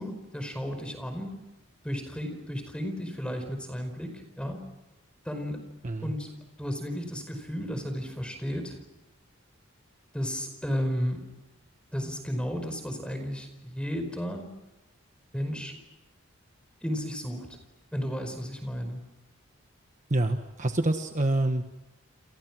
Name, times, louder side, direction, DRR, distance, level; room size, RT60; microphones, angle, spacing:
voice 1, 0.0-1.4 1.8-4.6 5.2-5.6 6.0-6.3 6.6-8.8 10.1-11.3 11.9-14.5 15.3-15.8 16.8-17.6 17.9-19.0, equal, 5° left, 7 dB, 4.9 m, -33 dB
voice 2, 20.1-21.6, right 1 dB, 35° right, 6 dB, 1.3 m, -26 dB
29.5 x 28.0 x 6.2 m, 0.99 s
head